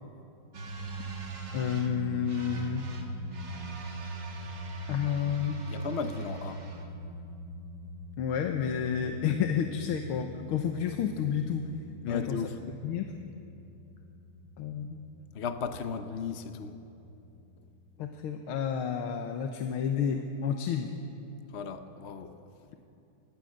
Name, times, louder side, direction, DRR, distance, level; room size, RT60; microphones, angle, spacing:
sound 1, 0.5-18.0, right 1 dB, 55° right, 2.5 m, -41 dB
voice 1, 1.5-2.9 4.9-5.7 8.2-11.7 12.0-12.4 12.8-13.1 14.6-15.0 18.0-20.9, left 8 dB, 85° left, 5 dB, 1.9 m, -30 dB
voice 2, 5.7-6.6 12.1-12.6 15.3-16.7 21.5-22.3, left 6 dB, 60° left, 8 dB, 0.7 m, -35 dB
25.0 x 18.0 x 6.5 m, 2.8 s
omnidirectional pair, 2.3 m